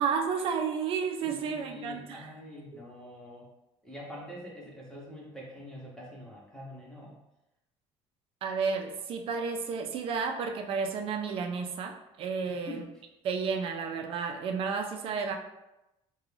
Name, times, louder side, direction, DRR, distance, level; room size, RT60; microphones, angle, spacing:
voice 1, 0.0-2.3 8.4-12.8 13.2-15.4, right 5 dB, 50° right, 4 dB, 0.4 m, -32 dB
voice 2, 1.2-3.5 3.8-7.2 12.4-12.9, left 1 dB, 5° left, -4 dB, 0.6 m, -45 dB
2.4 x 2.2 x 3.2 m, 0.93 s
cardioid pair, 140°, 12 cm